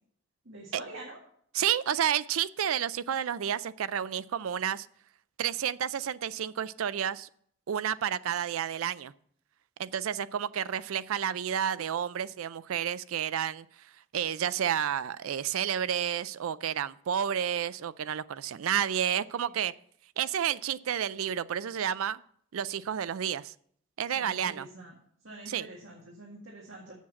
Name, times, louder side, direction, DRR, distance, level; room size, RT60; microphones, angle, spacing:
voice 1, 0.4-1.2 18.9-19.1 19.4-19.5 24.1-24.9 25.2-26.9, right 2 dB, 65° right, -3 dB, 1.9 m, -46 dB
voice 2, 1.5-4.9 5.4-7.3 7.7-9.1 9.8-13.7 14.1-19.7 20.2-22.2 22.5-23.5 24.0-24.7 25.5-25.7, right 9 dB, 85° right, 17 dB, 0.4 m, -30 dB
7.3 x 7.1 x 7.5 m, 0.64 s
head